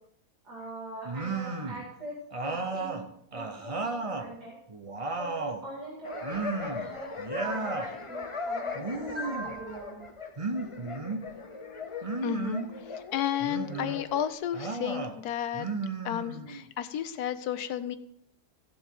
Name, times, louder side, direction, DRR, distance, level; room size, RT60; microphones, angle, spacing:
voice 1, 0.4-2.1 2.4-3.0 3.3-4.6 5.2-10.0 17.8-17.9, right 2 dB, 85° right, -5 dB, 3.1 m, -41 dB
sound 1, 1.0-1.8 2.3-4.3 4.7-5.6 6.2-6.9 7.2-7.9 8.7-9.5 10.4-11.3 12.0-12.7 13.4-14.0 14.5-15.1 15.5-16.6, right 3 dB, 25° right, 0.8 m, -34 dB
sound 2, 6.0-14.3, left 4 dB, 35° left, 0.5 m, -39 dB
voice 2, 12.2-15.7 16.0-18.0, left 10 dB, 75° left, 12 dB, 1.3 m, -32 dB
16.0 x 7.8 x 3.9 m, 0.70 s
omnidirectional pair, 1.7 m